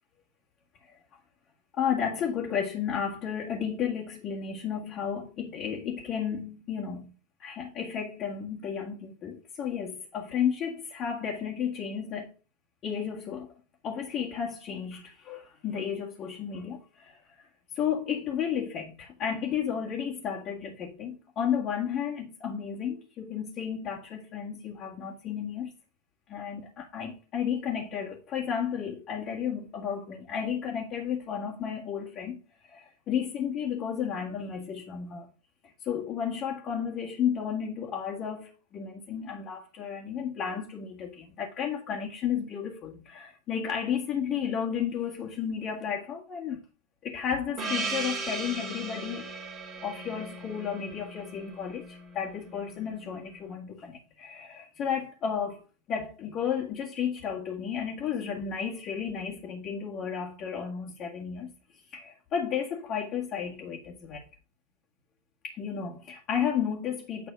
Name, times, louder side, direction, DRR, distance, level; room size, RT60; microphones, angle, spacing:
voice 1, 1.7-7.1 7.4-12.3 12.8-13.5 13.8-17.5 17.7-25.7 26.3-35.3 35.8-46.6 47.0-49.3 49.8-61.5 61.9-64.2 65.4-67.3, left 8 dB, 35° left, 1.9 m, -33 dB
Gong, 47.6-52.3, right 3 dB, 30° right, 2.3 m, -37 dB
9.7 x 4.0 x 5.1 m
figure-of-eight pair, 90°, 0 cm